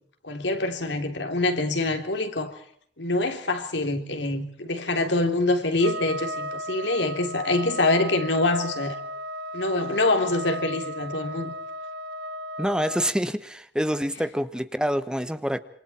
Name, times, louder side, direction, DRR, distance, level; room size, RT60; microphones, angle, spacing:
voice 1, 0.2-2.5 3.0-9.0 9.5-11.5, left 2 dB, 90° left, 3.4 m, -25 dB
Trumpet, 5.8-13.1, equal, 75° right, 1.3 m, -35 dB
voice 2, 12.6-15.6, equal, 5° right, 1.1 m, -26 dB
27.0 x 25.5 x 4.4 m
head